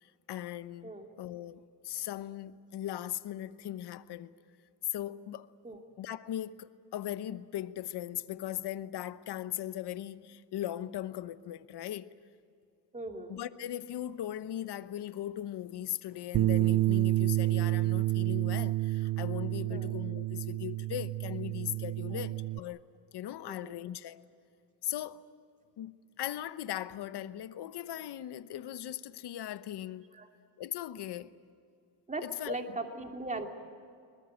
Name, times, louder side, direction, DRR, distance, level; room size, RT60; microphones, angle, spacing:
voice 1, 0.0-0.9 1.2-4.3 4.9-5.5 6.0-12.1 13.3-22.8 23.1-24.2 24.8-25.2 25.8-30.1 30.6-31.3 32.2-32.6, left 12 dB, 70° left, 1.0 m, -39 dB
voice 2, 12.9-13.4 19.7-19.9 22.1-22.2 23.4-23.8 30.1-30.3 32.1-33.5, right 2 dB, 20° right, 2.6 m, -39 dB
Bass guitar, 16.3-22.6, right 17 dB, 50° right, 0.5 m, -29 dB
23.0 x 20.5 x 9.2 m
cardioid pair, 95°, 41 cm